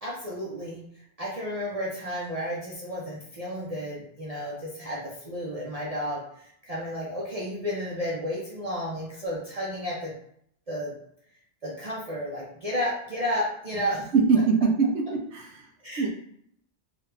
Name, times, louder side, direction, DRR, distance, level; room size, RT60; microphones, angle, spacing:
voice 1, 0.0-10.1 10.7-10.9 11.6-14.1 15.8-16.1, equal, 40° right, -6 dB, 0.6 m, -32 dB
voice 2, 14.1-15.7 16.0-16.1, right 5 dB, 85° right, 3 dB, 0.9 m, -23 dB
3.1 x 2.4 x 3.2 m, 0.71 s
omnidirectional pair, 1.1 m